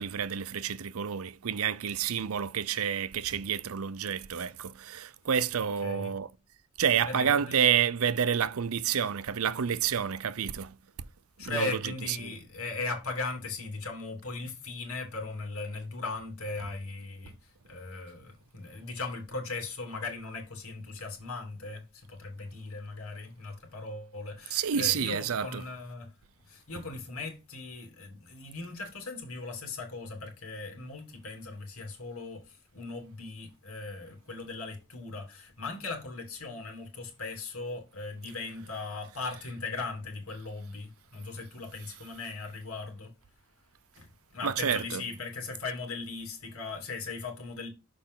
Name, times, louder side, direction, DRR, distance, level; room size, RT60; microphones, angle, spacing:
voice 1, 0.0-6.3 6.8-10.8 11.4-12.3 24.5-25.6 26.7-26.8 44.4-45.0, right 8 dB, 85° right, 0.6 m, -29 dB
voice 2, 5.8-6.1 7.0-7.9 11.4-26.1 26.5-43.1 44.0-47.7, left 3 dB, 85° left, 2.9 m, -38 dB
6.7 x 5.1 x 3.7 m
head